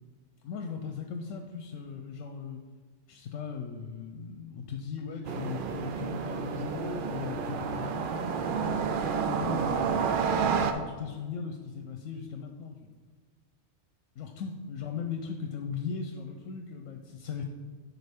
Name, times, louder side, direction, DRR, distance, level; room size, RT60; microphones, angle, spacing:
voice 1, 0.4-2.6 3.1-12.8 14.2-17.4, left 6 dB, 80° left, 4 dB, 0.9 m, -38 dB
sound 1, 5.2-10.7, right 6 dB, 60° right, 0.5 m, -30 dB
10.5 x 4.3 x 3.5 m, 1.5 s
omnidirectional pair, 1.3 m